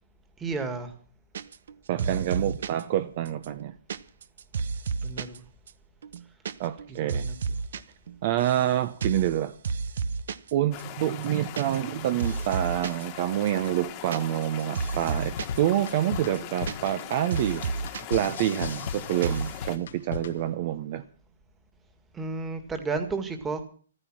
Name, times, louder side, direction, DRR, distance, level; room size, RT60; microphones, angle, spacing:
voice 1, 0.4-1.0 5.0-5.4 6.9-7.6 22.1-23.6, right 4 dB, 10° right, 2.0 m, -33 dB
sound 1, 1.3-1.7 2.0-2.8 3.3-5.4 5.7-5.8 6.0-6.5 6.8-7.8 8.1-8.7 9.0-9.3 9.6-10.5 10.8-10.9 11.1-11.9 12.2-13.0 13.5-15.6 15.9-16.0 16.2-17.0 17.3-18.0 18.3-18.9 19.2-19.5, right 5 dB, 65° right, 1.0 m, -32 dB
voice 2, 1.9-3.7 6.6-7.3 8.2-9.5 10.5-17.6 17.9-21.0, right 12 dB, 40° right, 0.9 m, -27 dB
sound 2, 10.7-19.8, left 12 dB, 30° left, 1.6 m, -41 dB
sound 3, 15.4-20.5, left 6 dB, 65° left, 1.3 m, -37 dB
14.5 x 13.0 x 6.2 m
hypercardioid pair, 155°, 0 cm